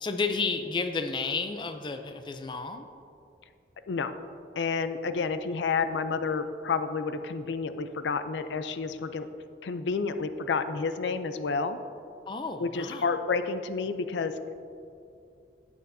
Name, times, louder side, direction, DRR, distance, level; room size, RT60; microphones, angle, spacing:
voice 1, 0.0-2.9 12.3-13.1, left 4 dB, 25° left, 7 dB, 0.4 m, -32 dB
voice 2, 4.6-9.3 9.6-11.8 12.6-14.3, left 4 dB, 85° left, 10 dB, 0.4 m, -30 dB
11.0 x 8.7 x 2.7 m, 2.6 s
head